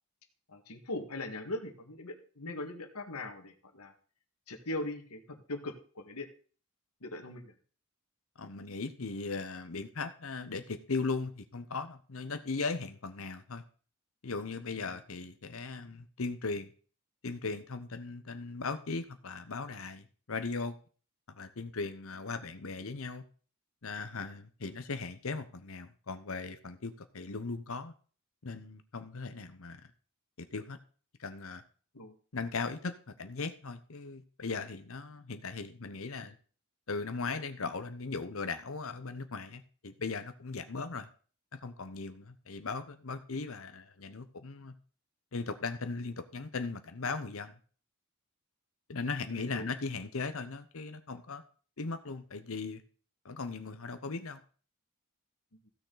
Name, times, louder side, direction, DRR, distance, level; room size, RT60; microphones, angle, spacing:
voice 1, 0.5-3.9 4.5-6.3 7.0-7.5 14.7-15.0 31.9-32.1 49.3-49.7, left 2 dB, 80° left, 1.8 m, -40 dB
voice 2, 8.4-13.6 14.2-16.7 17.2-20.8 21.3-23.2 23.8-27.9 28.4-29.8 30.4-30.8 31.2-31.6 32.3-36.3 36.9-41.1 41.5-44.7 45.3-47.5 48.9-51.4 51.8-52.8 53.2-54.4, left 4 dB, 65° left, 0.9 m, -38 dB
15.5 x 6.7 x 3.9 m
head